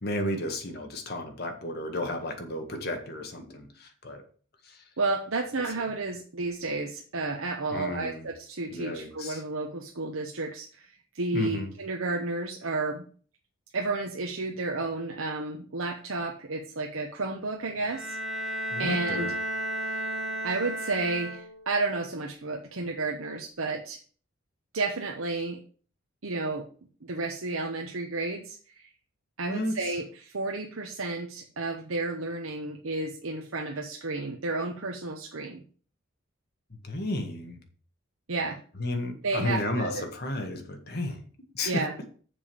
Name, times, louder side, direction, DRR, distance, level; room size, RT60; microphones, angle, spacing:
voice 1, 0.0-4.2 4.7-4.8 7.7-8.3 8.7-9.4 11.3-11.7 18.7-19.3 29.5-29.8 36.8-37.6 38.8-41.2 41.5-41.8, left 1 dB, 45° left, 4 dB, 1.7 m, -32 dB
voice 2, 5.0-13.1 13.7-19.3 20.4-24.0 24.7-25.6 26.2-26.7 27.0-28.9 29.4-35.6 38.3-38.6 39.2-40.0 41.6-41.9, right 3 dB, 75° right, 2 dB, 0.9 m, -32 dB
Bowed string instrument, 17.8-21.8, right 1 dB, ahead, 2.0 m, -33 dB
7.0 x 5.2 x 7.0 m, 0.43 s
head